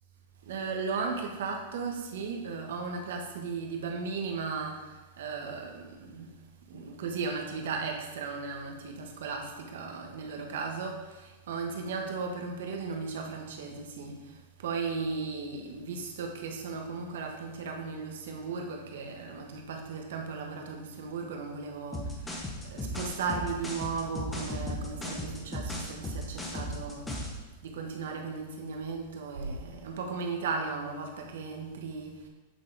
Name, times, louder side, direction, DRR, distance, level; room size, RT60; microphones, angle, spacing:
voice 1, 0.4-6.4 6.7-27.1 27.6-32.3, right 4 dB, 75° right, 2 dB, 1.2 m, -36 dB
sound 1, 21.9-27.4, left 1 dB, 10° left, 0.8 m, -36 dB
8.2 x 3.8 x 4.0 m, 1.1 s
supercardioid pair, 155°, 0 cm